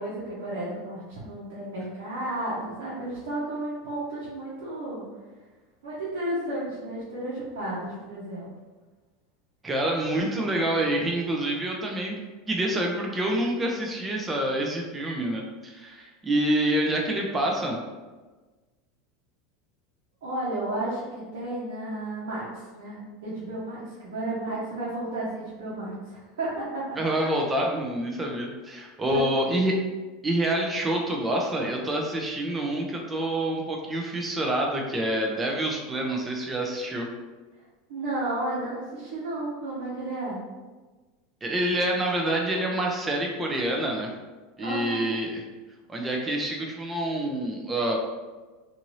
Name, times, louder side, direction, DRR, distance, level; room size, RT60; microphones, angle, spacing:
voice 1, 0.0-5.0 5.8-8.5 20.2-27.0 29.1-29.6 37.9-40.4 44.6-45.1, right 1 dB, 85° right, -9 dB, 0.9 m, -33 dB
voice 2, 9.6-12.2 12.5-17.8 27.0-29.8 30.2-37.1 41.4-44.1 44.6-45.4 45.9-48.0, right 1 dB, 20° right, 0 dB, 0.6 m, -27 dB
2.6 x 2.6 x 3.1 m, 1.3 s
supercardioid pair, 105°, 0 cm